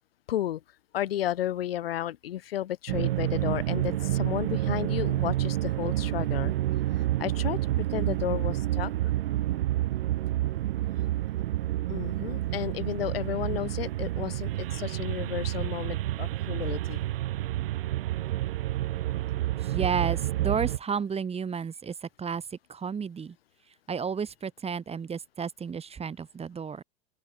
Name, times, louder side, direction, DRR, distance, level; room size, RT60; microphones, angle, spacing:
voice 1, 0.3-0.6 0.9-6.5 7.0-9.1 11.9-17.0, left 12 dB, 75° left, 3.2 m, -33 dB
sound 1, 2.9-20.8, right 14 dB, 75° right, 1.7 m, -29 dB
voice 2, 19.6-23.3 23.9-26.8, right 6 dB, 20° right, 2.6 m, -32 dB
open air
hypercardioid pair, 100°, 29 cm